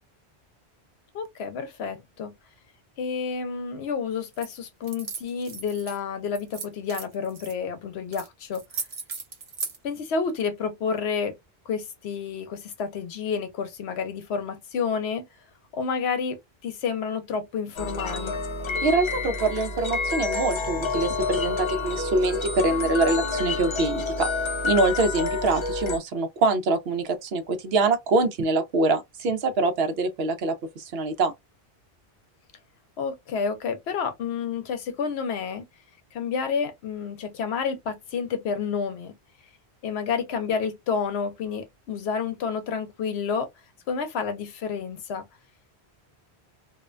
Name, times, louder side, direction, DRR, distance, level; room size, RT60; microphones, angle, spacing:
voice 1, 1.1-2.3 3.0-8.6 9.8-11.3 11.7-15.2 15.7-18.4 33.0-35.6 36.1-39.1 39.8-43.5 43.9-45.2, left 6 dB, 75° left, 0.9 m, -30 dB
sound 1, 4.3-4.5 4.8-6.0 6.3-7.5 8.1-8.3 8.5-9.8, right 5 dB, 40° right, 0.6 m, -36 dB
sound 2, 17.8-26.0, left 3 dB, 45° left, 0.4 m, -29 dB
voice 2, 18.8-24.3 24.6-31.3, right 3 dB, 70° right, 0.8 m, -24 dB
2.4 x 2.1 x 2.4 m
omnidirectional pair, 1.1 m